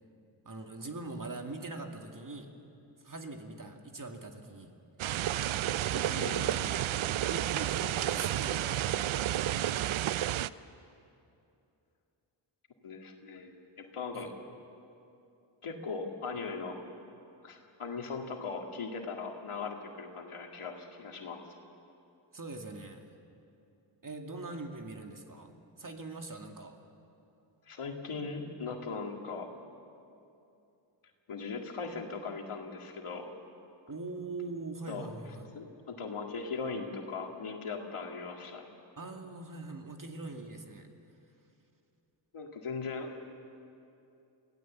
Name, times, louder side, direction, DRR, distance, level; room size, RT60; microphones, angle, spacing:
voice 1, 0.4-2.5 3.0-4.7 5.9-6.9 7.3-9.0 9.3-9.7 14.1-14.3 22.3-23.0 24.0-26.8 33.9-35.5 39.0-40.9, right 2 dB, 40° right, 4 dB, 2.2 m, -42 dB
sound 1, 5.0-10.5, right 12 dB, 70° right, 0.6 m, -31 dB
voice 2, 12.8-14.3 15.6-16.8 17.4-21.4 27.7-29.5 31.3-33.3 34.9-35.1 35.5-38.7 42.3-43.1, left 4 dB, 80° left, 3 dB, 2.1 m, -39 dB
24.0 x 16.0 x 7.4 m, 2.7 s
cardioid pair, 45°, 50 cm